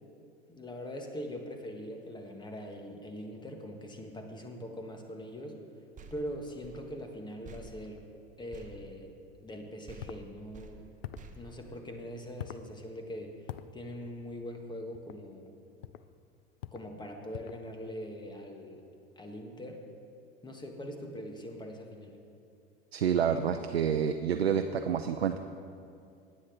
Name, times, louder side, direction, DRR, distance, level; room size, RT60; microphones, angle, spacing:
voice 1, 0.5-5.6 6.1-8.0 8.4-9.1 9.4-10.8 11.4-13.3 13.7-15.5 16.7-18.8 19.2-19.8 20.4-22.2, equal, 15° left, 3 dB, 1.5 m, -42 dB
sound 1, 6.0-9.6 9.9-12.3, right 3 dB, 25° right, 1.1 m, -52 dB
sound 2, 10.0-10.2 11.0-11.3 12.4-12.7 13.5-13.7 14.9-15.2 15.8-16.1 16.6-16.9 17.3-17.7, left 13 dB, 70° left, 0.5 m, -43 dB
voice 2, 22.9-25.4, right 8 dB, 85° right, 7 dB, 0.5 m, -28 dB
17.0 x 9.6 x 3.8 m, 2.4 s
figure-of-eight pair, 85°, 30 cm